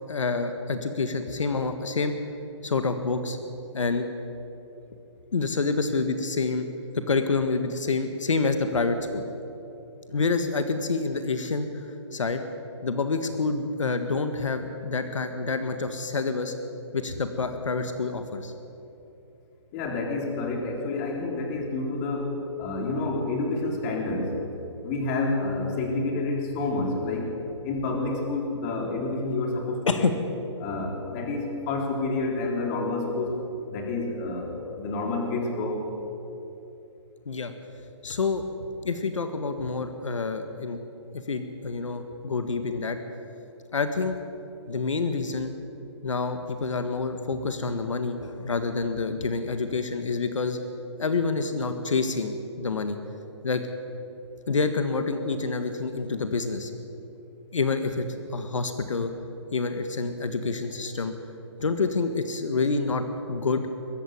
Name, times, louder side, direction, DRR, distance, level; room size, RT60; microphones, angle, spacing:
voice 1, 0.1-2.1 2.6-3.4 3.7-4.1 5.3-6.7 7.1-9.2 10.1-12.4 12.8-16.5 16.9-18.5 29.9-30.1 37.3-37.5 38.0-40.8 41.3-43.0 43.7-44.2 44.7-45.5 46.0-50.6 51.0-53.0 53.4-53.6 54.5-56.7 57.5-58.1 58.3-59.1 59.5-61.1 61.6-63.7, left 4 dB, 85° left, 8 dB, 1.7 m, -27 dB
voice 2, 19.7-24.4 24.8-27.3 27.6-30.1 30.6-33.3 33.7-35.9, left 3 dB, 30° left, 1 dB, 4.0 m, -29 dB
22.0 x 13.5 x 9.5 m, 2.9 s
hypercardioid pair, 150°, 16 cm